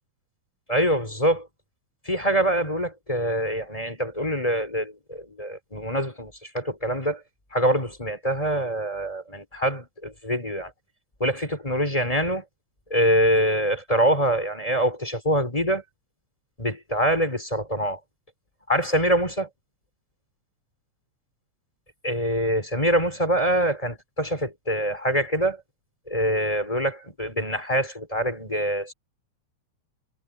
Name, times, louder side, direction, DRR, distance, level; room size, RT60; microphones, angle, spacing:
voice 1, 0.7-1.5 2.0-7.2 7.5-10.7 11.2-12.4 12.9-15.8 16.6-18.0 18.7-19.5 22.0-25.6 26.1-28.9, right 1 dB, 10° left, 3.1 m, -24 dB
omnidirectional pair, 3.4 m